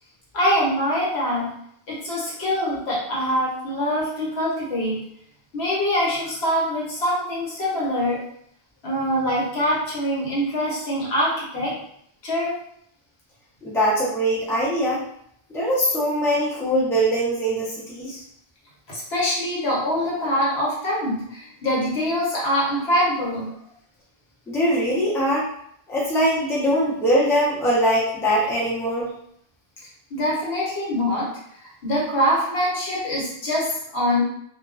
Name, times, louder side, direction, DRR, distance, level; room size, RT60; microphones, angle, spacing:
voice 1, 0.3-1.5 1.9-5.0 5.5-8.2 8.8-11.8 12.2-12.6 18.9-23.5 30.1-34.2, equal, 85° left, -5 dB, 1.1 m, -24 dB
voice 2, 13.6-15.0 15.5-18.2 24.5-25.5 25.9-29.1, equal, 5° left, -7 dB, 0.5 m, -22 dB
2.3 x 2.2 x 2.4 m, 0.70 s
omnidirectional pair, 1.0 m